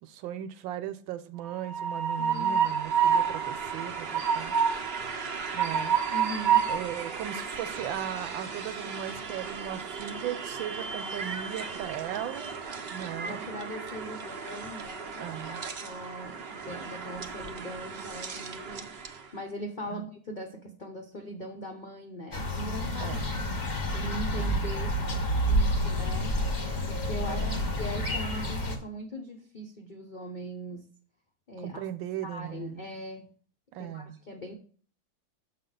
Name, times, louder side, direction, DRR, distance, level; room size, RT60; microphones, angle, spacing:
voice 1, 0.0-4.5 5.5-6.0 6.7-12.6 12.9-13.5 15.2-15.6 19.9-20.1 23.0-23.4 27.3-27.7 31.6-32.8 33.7-34.2, right 11 dB, 80° right, 12 dB, 1.4 m, -37 dB
Train, 1.5-19.3, right 7 dB, 60° right, 0.6 m, -31 dB
voice 2, 2.2-2.6 6.1-6.7 13.3-23.5 23.9-25.0 25.5-26.4 26.9-27.4 27.8-30.9 31.5-31.8 32.2-33.3 33.8-34.5, equal, 70° left, 2 dB, 0.4 m, -40 dB
sound 1, 22.3-28.8, equal, 30° left, 1.0 m, -29 dB
7.4 x 5.6 x 3.8 m, 0.43 s
omnidirectional pair, 2.1 m